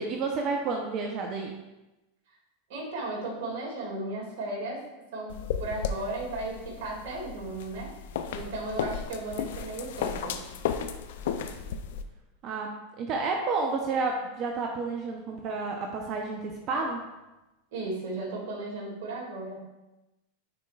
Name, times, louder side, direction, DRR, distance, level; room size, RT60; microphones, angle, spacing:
voice 1, 0.0-1.6 12.4-17.0, right 4 dB, 45° right, 1 dB, 0.7 m, -30 dB
voice 2, 2.7-4.8 5.1-7.9 8.3-10.4 17.7-19.6, right 2 dB, 65° right, -3 dB, 2.3 m, -35 dB
sound 1, 5.3-12.0, left 7 dB, 70° left, 0.5 m, -34 dB
9.7 x 4.5 x 2.4 m, 1.0 s
hypercardioid pair, 100°, 0 cm